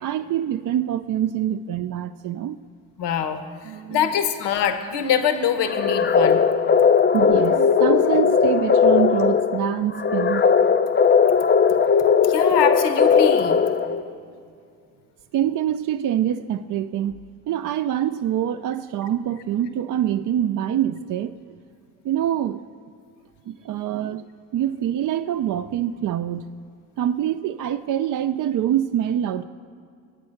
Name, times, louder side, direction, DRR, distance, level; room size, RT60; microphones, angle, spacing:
voice 1, 0.0-2.6 3.6-4.2 7.1-10.4 15.3-17.2 17.5-21.6 22.0-22.6 23.5-26.5 27.0-29.4, right 10 dB, 50° right, 8 dB, 0.4 m, -25 dB
voice 2, 3.0-3.4 3.9-6.4 12.2-13.6, left 8 dB, 70° left, 9 dB, 1.0 m, -23 dB
sound 1, 5.7-14.1, left 6 dB, 25° left, 0.6 m, -18 dB
9.4 x 8.6 x 6.4 m, 2.4 s
supercardioid pair, 60°, 43 cm